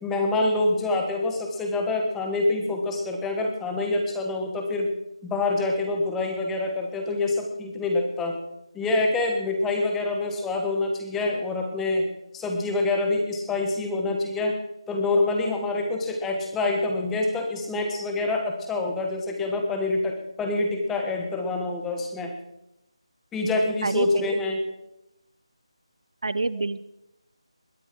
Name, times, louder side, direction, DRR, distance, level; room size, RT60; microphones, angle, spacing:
voice 1, 0.0-4.9 5.2-8.3 8.7-12.0 12.3-14.6 14.9-22.3 23.3-24.6, left 2 dB, 5° left, 2 dB, 1.0 m, -26 dB
voice 2, 23.8-24.3 26.2-26.9, right 3 dB, 60° right, 17 dB, 0.5 m, -27 dB
21.0 x 9.7 x 4.5 m, 0.87 s
figure-of-eight pair, 175°, 3 cm